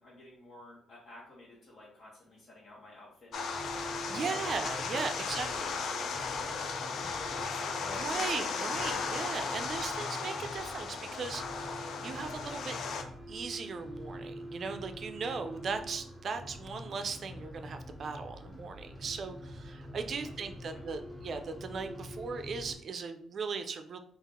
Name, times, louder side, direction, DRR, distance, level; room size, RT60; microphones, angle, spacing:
voice 1, 0.0-4.3 5.2-8.4 20.2-20.8, left 1 dB, 45° left, -7 dB, 1.1 m, -51 dB
sound 1, 3.3-13.0, left 5 dB, 65° left, 0.4 m, -36 dB
sound 2, 3.3-22.8, equal, 5° right, 0.7 m, -46 dB
voice 2, 4.1-5.7 7.9-12.8 13.3-24.0, right 5 dB, 55° right, 8 dB, 0.4 m, -38 dB
3.6 x 2.4 x 3.5 m, 0.65 s
cardioid pair, 90°, 0 cm